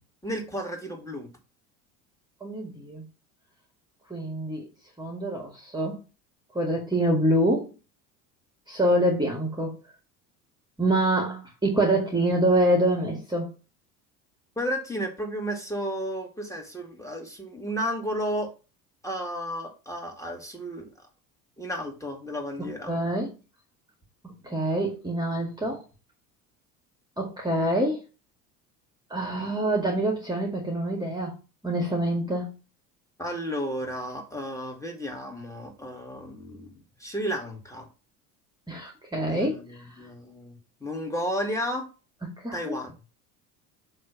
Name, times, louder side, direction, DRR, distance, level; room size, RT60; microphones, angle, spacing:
voice 1, 0.2-1.3 14.6-18.5 19.0-20.9 21.6-22.9 33.2-37.9 39.3-41.9 42.5-42.9, equal, 5° left, 2.5 m, -33 dB
voice 2, 2.4-3.0 4.1-4.6 5.0-6.0 6.5-7.7 8.7-9.8 10.8-13.5 22.9-23.3 24.2-25.8 27.2-28.0 29.1-31.4 31.6-32.5 38.7-39.5 42.2-42.8, right 1 dB, 10° right, 1.9 m, -26 dB
7.5 x 3.3 x 5.9 m
hypercardioid pair, 70°, 45 cm